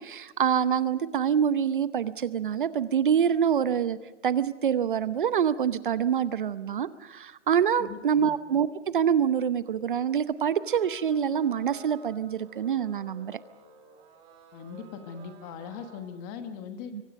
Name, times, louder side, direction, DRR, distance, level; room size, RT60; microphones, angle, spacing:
voice 1, 0.0-4.0 4.2-13.4 16.9-17.0, right 8 dB, 45° right, 14 dB, 0.8 m, -26 dB
voice 2, 7.8-8.4 14.5-16.9, left 7 dB, 15° left, 8 dB, 1.3 m, -40 dB
sound 1, 10.6-16.0, right 5 dB, 15° right, 2.3 m, -52 dB
26.0 x 24.0 x 5.3 m, 1.1 s
hypercardioid pair, 160°, 35 cm